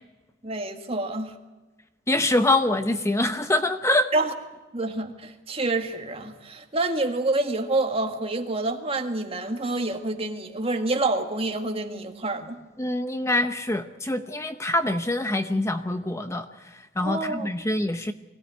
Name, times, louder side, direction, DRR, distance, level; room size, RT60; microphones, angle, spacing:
voice 1, 0.4-1.3 4.1-4.3 4.7-12.6 17.0-17.5, right 2 dB, 30° right, 5 dB, 1.9 m, -27 dB
voice 2, 2.1-4.1 12.8-18.1, left 1 dB, 15° left, 8 dB, 0.8 m, -25 dB
23.0 x 16.5 x 9.3 m, 1.2 s
head